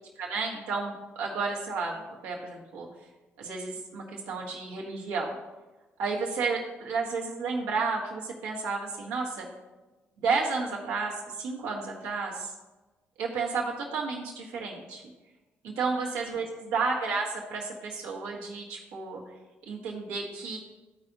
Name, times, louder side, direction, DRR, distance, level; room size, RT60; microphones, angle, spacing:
voice 1, 0.2-1.9 2.2-2.9 3.4-5.3 6.0-9.5 10.2-12.5 13.2-15.0 15.6-19.2 19.7-20.6, right 4 dB, 85° right, -3 dB, 1.6 m, -32 dB
14.0 x 4.8 x 2.7 m, 1.2 s
supercardioid pair, 55°, 6 cm